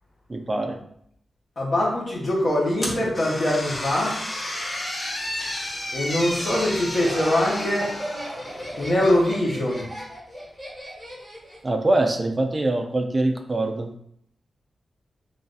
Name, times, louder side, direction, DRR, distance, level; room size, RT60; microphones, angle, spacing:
voice 1, 0.3-0.8 11.6-13.9, right 2 dB, 20° right, 4 dB, 0.3 m, -23 dB
voice 2, 1.6-4.1 5.9-7.9 8.8-9.8, left 1 dB, 45° left, -3 dB, 1.0 m, -23 dB
sound 1, 2.8-8.9, left 1 dB, 25° left, 0.6 m, -32 dB
Laughter, 6.5-11.7, equal, 5° left, 1.2 m, -36 dB
3.2 x 2.6 x 3.9 m, 0.70 s
wide cardioid pair, 175°, 0 cm